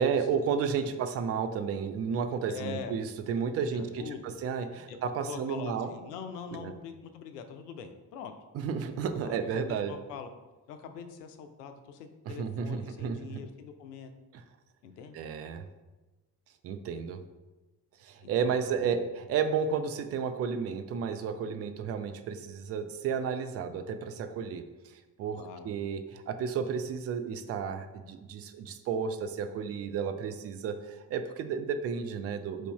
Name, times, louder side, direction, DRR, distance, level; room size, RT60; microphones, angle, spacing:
voice 1, 0.0-5.9 6.5-6.7 8.5-9.9 12.3-13.4 15.1-15.6 16.6-17.2 18.0-24.7 25.2-32.7, right 6 dB, 35° right, 8 dB, 0.4 m, -32 dB
voice 2, 2.5-3.0 3.6-4.2 4.9-5.0 5.3-8.3 9.2-10.3 10.7-14.1 14.8-15.2 18.2-19.1 25.3-25.7, left 6 dB, 75° left, 7 dB, 0.5 m, -43 dB
4.5 x 2.7 x 4.4 m, 1.2 s
figure-of-eight pair, 40°, 48 cm